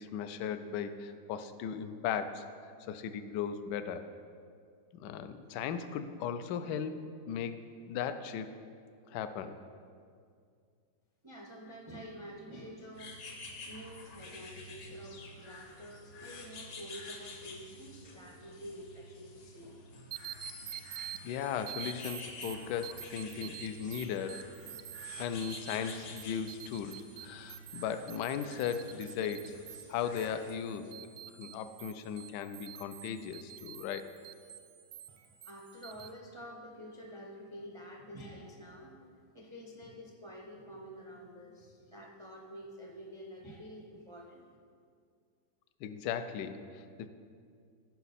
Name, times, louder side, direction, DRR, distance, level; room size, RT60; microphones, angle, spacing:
voice 1, 0.0-4.1 4.9-7.6 7.9-8.6 9.1-9.6 21.2-24.5 25.2-29.6 29.9-30.9 31.3-34.1 45.8-47.1, left 8 dB, 75° left, 10 dB, 1.2 m, -37 dB
voice 2, 11.2-13.2 13.6-19.8 35.1-44.4, equal, 45° right, -1 dB, 0.3 m, -48 dB
sound 1, 12.9-30.6, left 2 dB, 55° left, 1.4 m, -49 dB
sound 2, 20.1-36.1, right 11 dB, 65° right, 0.8 m, -48 dB
15.0 x 5.7 x 4.2 m, 2.2 s
omnidirectional pair, 2.0 m